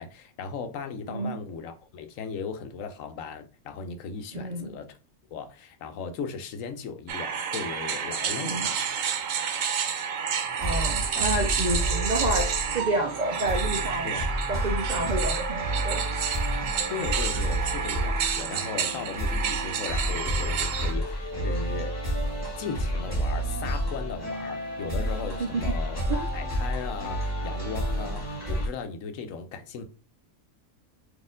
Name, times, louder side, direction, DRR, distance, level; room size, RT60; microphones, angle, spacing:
voice 1, 0.0-5.0 5.3-9.0 11.1-11.3 14.0-14.3 16.9-22.0 22.6-26.0 26.3-29.8, left 5 dB, 90° left, 1.1 m, -37 dB
voice 2, 4.3-4.7 8.4-8.7 10.6-14.1 14.5-16.0 25.4-25.7 26.1-26.3, right 2 dB, 55° right, 0.5 m, -29 dB
sound 1, 7.1-20.9, right 7 dB, 80° right, 1.1 m, -30 dB
sound 2, 10.5-28.7, equal, 10° left, 2.0 m, -30 dB
4.2 x 2.9 x 3.6 m
omnidirectional pair, 1.3 m